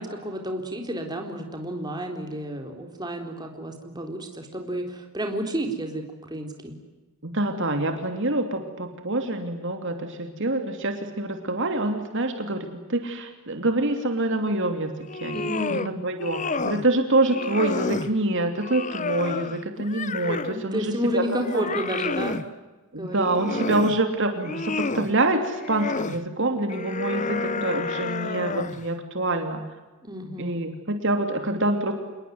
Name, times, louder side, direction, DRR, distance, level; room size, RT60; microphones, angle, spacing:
voice 1, 0.0-6.8 15.3-16.0 20.5-22.4 23.0-23.7 30.0-30.6, equal, 20° right, 3 dB, 4.0 m, -31 dB
voice 2, 7.2-21.2 21.5-21.6 22.9-29.6 30.4-31.9, right 2 dB, 55° right, 5 dB, 2.9 m, -26 dB
sound 1, 15.0-15.9 16.2-16.9 17.2-18.1 18.6-20.6 21.1-22.5 23.1-24.0 24.4-25.1 25.6-26.2 26.7-28.9, left 4 dB, 35° left, 1.0 m, -30 dB
28.0 x 21.0 x 9.6 m, 1.2 s
head